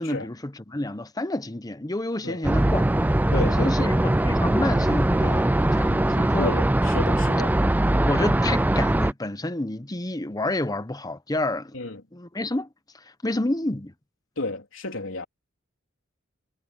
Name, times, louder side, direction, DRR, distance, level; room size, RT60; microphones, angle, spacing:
voice 1, 0.0-3.1 3.3-6.6 8.0-11.8 12.1-12.7 13.2-13.9, left 1 dB, 20° left, 0.9 m, -29 dB
sound 1, 2.4-9.1, right 1 dB, 10° right, 0.4 m, -21 dB
voice 2, 3.3-4.0 6.4-7.6 11.7-12.0 14.4-15.3, left 2 dB, 75° left, 3.7 m, -32 dB
head